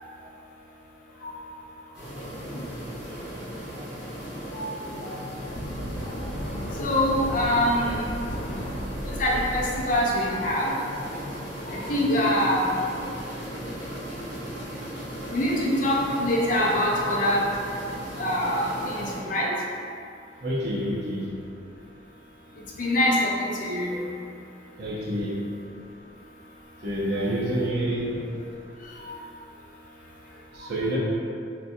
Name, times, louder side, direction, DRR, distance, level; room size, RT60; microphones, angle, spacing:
sound 1, 1.9-19.2, equal, 5° right, 1.2 m, -37 dB
voice 1, 4.5-5.1 6.2-6.3 6.8-8.1 9.0-10.7 11.7-12.8 15.3-17.5 18.2-19.5 22.8-24.1 27.2-27.3 29.1-29.2, left 1 dB, 45° left, -3 dB, 0.5 m, -25 dB
sound 2, 5.5-10.7, equal, 75° left, 0.8 m, -35 dB
voice 2, 20.4-21.3 24.8-25.4 26.8-28.2 30.5-31.0, right 1 dB, 55° right, -5 dB, 0.6 m, -28 dB
3.8 x 2.2 x 2.6 m, 2.5 s
head